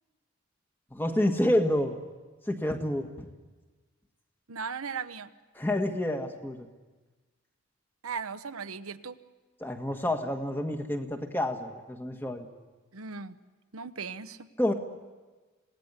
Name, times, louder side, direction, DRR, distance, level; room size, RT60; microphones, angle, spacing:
voice 1, 0.9-2.0 2.5-3.3 5.5-6.7 9.6-12.5 14.6-14.7, left 1 dB, 10° left, 4 dB, 1.7 m, -28 dB
voice 2, 4.5-5.3 8.0-9.2 12.9-13.3 13.7-14.5, right 5 dB, 90° right, 10 dB, 1.0 m, -37 dB
26.5 x 18.5 x 9.8 m, 1.3 s
head